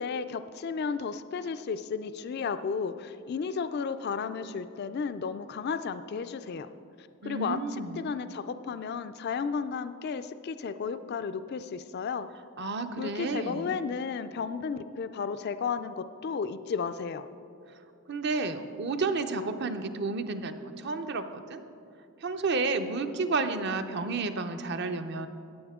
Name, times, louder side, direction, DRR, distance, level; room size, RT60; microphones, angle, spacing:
voice 1, 0.0-6.7 7.0-7.6 7.9-12.3 13.0-17.3, left 5 dB, 45° left, 11 dB, 0.3 m, -33 dB
voice 2, 7.2-8.1 12.6-13.8 18.1-21.6 22.2-25.3, right 3 dB, 50° right, 8 dB, 0.6 m, -31 dB
15.0 x 9.3 x 3.6 m, 2.6 s
head